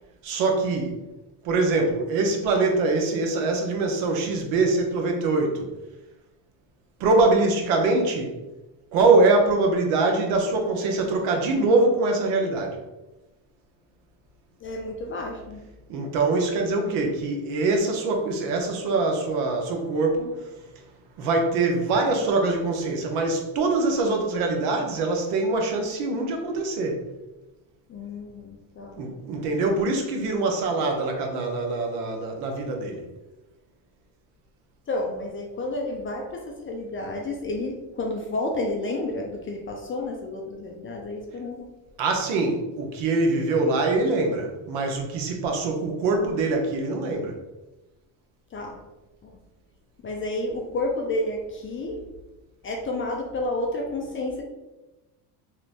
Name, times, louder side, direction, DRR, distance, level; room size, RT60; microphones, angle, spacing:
voice 1, 0.2-1.0 1.4-5.7 7.0-8.4 8.9-12.8 15.9-20.8 21.2-27.0 29.0-33.0 42.0-47.4, right 3 dB, 80° right, 2 dB, 0.9 m, -23 dB
voice 2, 14.6-15.6 27.9-29.1 34.9-41.7 48.5-48.8 49.2-49.4 50.0-52.0 52.6-54.4, left 2 dB, 30° left, 1 dB, 0.3 m, -30 dB
2.9 x 2.5 x 3.4 m, 1.0 s
cardioid pair, 110°, 50 cm